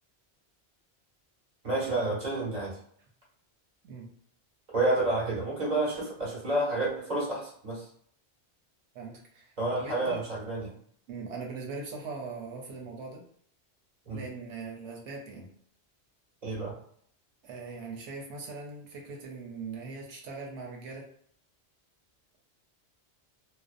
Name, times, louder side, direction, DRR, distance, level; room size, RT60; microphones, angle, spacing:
voice 1, 1.6-2.8 4.7-7.9 9.6-10.7 14.1-14.2 16.4-16.7, right 2 dB, 40° right, -5 dB, 1.0 m, -29 dB
voice 2, 8.9-9.5 9.8-10.2 11.1-13.2 14.1-15.5 17.4-21.1, right 4 dB, 85° right, -1 dB, 0.9 m, -40 dB
2.5 x 2.0 x 2.4 m, 0.63 s
omnidirectional pair, 1.1 m